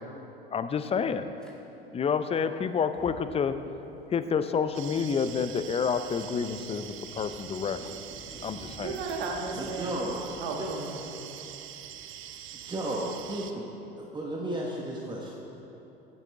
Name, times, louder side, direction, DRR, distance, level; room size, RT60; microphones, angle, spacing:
voice 1, 0.5-1.3 1.9-3.6 4.1-7.8 8.4-8.9, left 6 dB, 20° left, 11 dB, 0.6 m, -29 dB
Fire, 1.4-1.5 2.8-11.9, equal, ahead, 2.1 m, -51 dB
sound 1, 4.7-13.5, right 10 dB, 40° right, 0.8 m, -44 dB
voice 2, 8.8-10.1 10.4-11.5, right 4 dB, 70° right, 1 dB, 1.7 m, -36 dB
voice 3, 9.6-10.3 10.6-10.9 12.6-13.6 14.0-15.4, right 1 dB, 15° right, -3 dB, 1.4 m, -34 dB
15.0 x 9.5 x 3.6 m, 3.0 s
hypercardioid pair, 75°, 30 cm